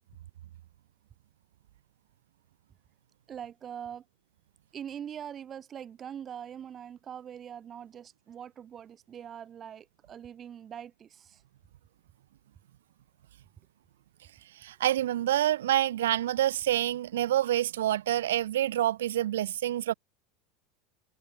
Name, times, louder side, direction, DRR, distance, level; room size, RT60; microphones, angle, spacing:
voice 1, 3.3-4.1 4.7-11.4, right 9 dB, 35° right, 3.8 m, -43 dB
voice 2, 14.6-19.9, right 12 dB, 80° right, 0.5 m, -27 dB
hypercardioid pair, 90°, 0 cm